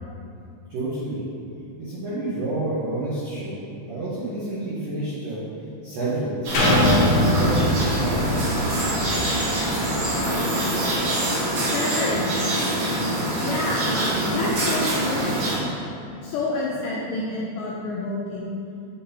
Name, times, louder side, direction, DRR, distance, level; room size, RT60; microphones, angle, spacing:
voice 1, 0.7-1.2 1.8-3.6 3.9-5.4 5.8-6.6 7.1-8.4, right 2 dB, 85° right, -10 dB, 1.9 m, -29 dB
sound 1, 6.4-15.6, right 1 dB, 60° right, 2.4 m, -24 dB
sound 2, 6.5-10.3 10.8-10.9, left 1 dB, 70° left, 2.7 m, -23 dB
voice 2, 11.6-12.6 13.4-15.5 16.2-18.5, left 2 dB, 85° left, -4 dB, 2.4 m, -28 dB
9.1 x 4.0 x 2.7 m, 2.6 s
omnidirectional pair, 5.5 m